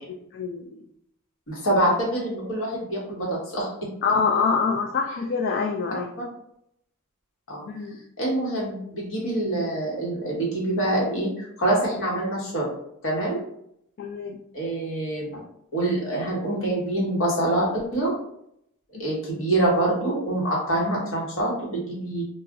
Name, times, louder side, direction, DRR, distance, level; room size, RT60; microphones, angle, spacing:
voice 1, 0.3-0.8 4.0-6.1 7.7-8.0 14.0-14.4, left 5 dB, 50° left, 0 dB, 0.3 m, -25 dB
voice 2, 1.5-3.9 7.5-7.7 8.2-12.7 13.0-13.4 14.5-15.4 15.7-18.1 19.0-22.3, right 1 dB, 65° left, -3 dB, 1.1 m, -25 dB
2.3 x 2.0 x 3.5 m, 0.73 s
head